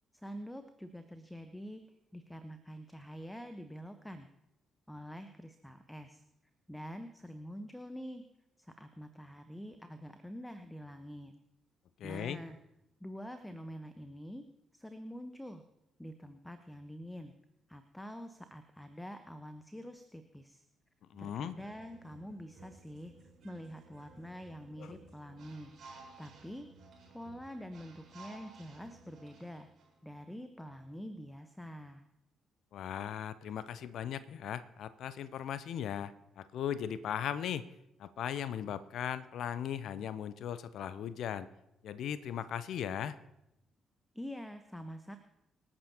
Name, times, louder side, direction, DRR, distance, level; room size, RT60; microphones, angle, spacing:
voice 1, 0.1-1.8 2.1-4.3 4.9-6.2 6.7-8.2 8.6-11.3 12.0-12.6 13.0-14.4 14.7-15.6 16.0-17.3 17.7-20.6 21.2-23.1 23.4-25.7 26.2-26.7 27.1-29.7 30.0-32.0 44.1-45.2, equal, 5° left, 9 dB, 1.0 m, -46 dB
voice 2, 12.0-12.4 21.1-21.6 24.8-25.0 32.7-37.7 38.0-41.5 41.8-43.2, left 9 dB, 65° left, 15 dB, 0.6 m, -38 dB
sound 1, 21.1-29.9, right 4 dB, 60° right, 4.5 m, -56 dB
26.0 x 8.8 x 2.9 m, 0.87 s
figure-of-eight pair, 40°, 0 cm